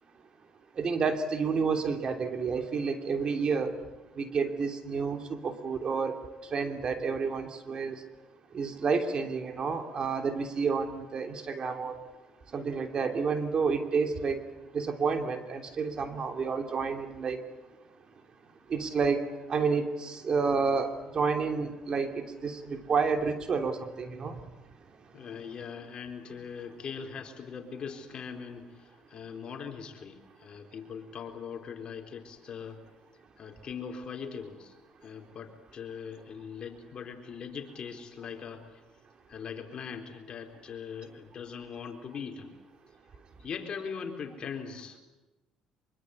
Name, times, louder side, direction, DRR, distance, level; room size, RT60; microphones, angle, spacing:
voice 1, 0.8-3.7 4.2-6.2 6.5-8.0 8.5-12.0 12.5-14.4 14.7-17.4 18.7-19.2 19.5-24.4, right 5 dB, 45° right, 5 dB, 3.1 m, -30 dB
voice 2, 25.1-32.8 33.4-34.7 35.0-38.8 39.3-42.6 43.4-45.0, left 6 dB, 50° left, 4 dB, 4.1 m, -41 dB
24.5 x 23.5 x 8.5 m, 1.1 s
supercardioid pair, 85°, 2 cm